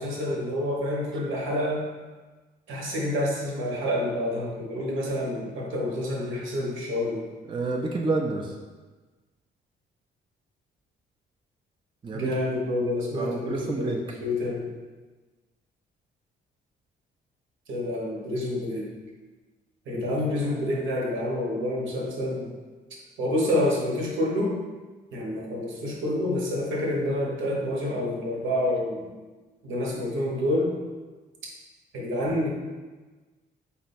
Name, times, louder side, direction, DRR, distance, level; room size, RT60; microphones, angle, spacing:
voice 1, 0.0-1.9 2.7-7.3 12.1-14.7 17.7-18.9 19.9-22.5 23.2-24.6 25.1-29.1 29.6-30.8 31.9-32.5, left 1 dB, 75° right, -2 dB, 1.0 m, -28 dB
voice 2, 7.5-8.5 12.0-12.3 13.1-14.0 19.9-20.0, right 3 dB, 25° right, 1 dB, 0.4 m, -29 dB
4.2 x 2.3 x 4.1 m, 1.3 s
cardioid pair, 90°, 20 cm